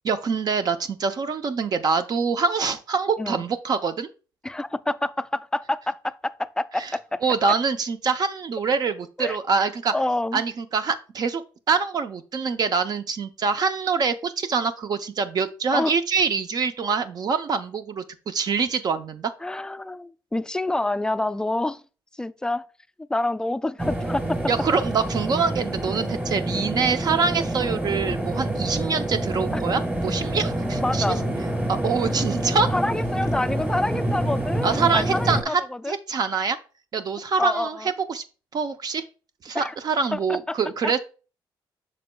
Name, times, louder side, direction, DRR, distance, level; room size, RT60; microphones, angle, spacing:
voice 1, 0.0-4.1 6.8-6.9 7.2-9.9 10.3-11.4 11.7-19.3 24.5-31.2 31.7-32.7 34.6-35.6 35.9-36.6 36.9-37.8 38.1-38.2 38.5-39.0 39.4-41.0, right 5 dB, 50° right, 0.5 m, -25 dB
voice 2, 4.4-7.2 9.2-9.4 9.9-10.4 15.7-15.9 19.4-21.8 22.2-22.7 23.1-24.4 29.5-29.6 30.8-31.2 32.7-36.0 37.4-37.9 39.5-39.7 40.1-40.6 40.8-40.9, left 2 dB, 10° left, 0.3 m, -27 dB
sound 1, 23.8-35.4, right 1 dB, 20° right, 1.4 m, -27 dB
7.5 x 6.1 x 2.2 m
cardioid pair, 100°, 9 cm